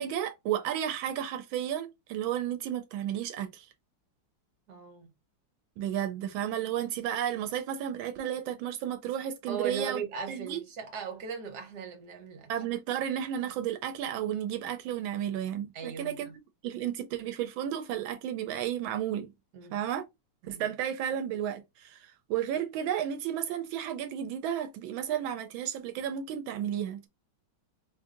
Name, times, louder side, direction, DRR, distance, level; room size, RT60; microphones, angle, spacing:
voice 1, 0.0-3.7 5.8-10.0 10.3-10.6 12.5-16.3 16.6-19.3 19.7-20.0 20.5-27.1, right 10 dB, 85° right, 1.4 m, -33 dB
voice 2, 4.7-5.1 9.5-12.5 15.7-16.3 19.5-19.8 20.4-20.7, right 6 dB, 60° right, 1.5 m, -38 dB
4.9 x 2.6 x 2.5 m
omnidirectional pair, 2.1 m